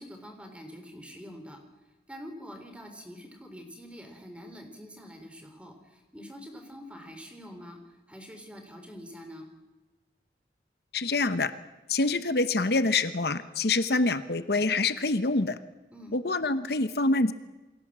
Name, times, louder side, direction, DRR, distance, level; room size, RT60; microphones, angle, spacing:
voice 1, 0.0-1.6 2.1-7.8 8.1-9.5 15.9-16.2, equal, 5° right, 5 dB, 3.8 m, -45 dB
voice 2, 10.9-11.5 11.9-15.6 16.1-17.3, left 3 dB, 65° left, 11 dB, 1.0 m, -26 dB
28.5 x 22.5 x 7.5 m, 1.2 s
head